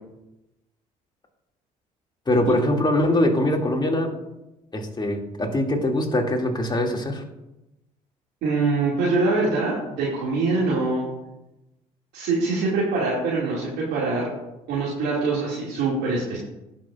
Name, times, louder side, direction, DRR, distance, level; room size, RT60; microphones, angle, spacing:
voice 1, 2.3-4.1 4.7-7.2, left 1 dB, 25° left, 0 dB, 2.4 m, -22 dB
voice 2, 8.4-11.0 12.1-14.3 14.7-16.4, right 3 dB, 65° right, -6 dB, 2.3 m, -24 dB
18.0 x 6.1 x 2.5 m, 0.94 s
hypercardioid pair, 55°, 19 cm